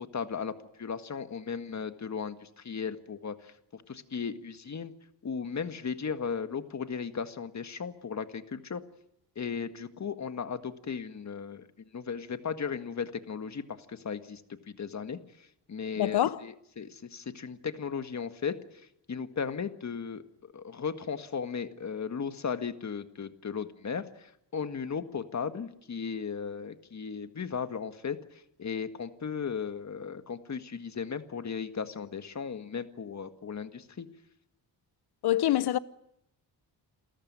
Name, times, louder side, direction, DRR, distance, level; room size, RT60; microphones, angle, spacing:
voice 1, 0.0-4.9 5.2-8.8 9.4-14.4 14.7-15.2 15.7-34.1, left 6 dB, 40° left, 1.8 m, -36 dB
voice 2, 16.0-16.4 35.2-35.8, left 13 dB, 65° left, 0.9 m, -25 dB
28.5 x 14.0 x 9.6 m
cardioid pair, 95°, 43 cm